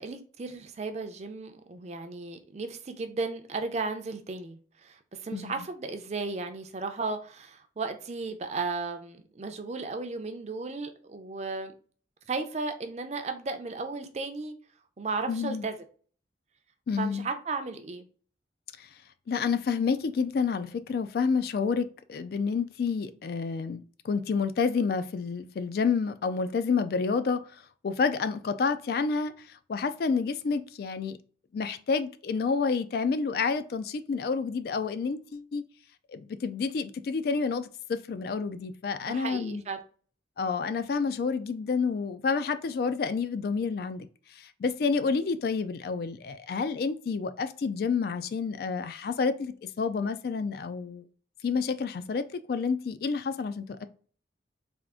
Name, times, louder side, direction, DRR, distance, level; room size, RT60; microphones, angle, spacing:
voice 1, 0.0-11.7 12.3-14.5 15.0-15.8 17.0-18.1 39.1-39.8, right 3 dB, 35° right, 0.5 m, -35 dB
voice 2, 15.3-15.7 16.9-17.3 18.8-18.9 19.3-27.4 27.8-29.3 29.7-31.2 31.5-35.6 36.1-39.6 40.4-44.1 44.4-51.0 51.4-53.9, left 5 dB, 55° left, 0.3 m, -29 dB
3.5 x 2.4 x 3.6 m
head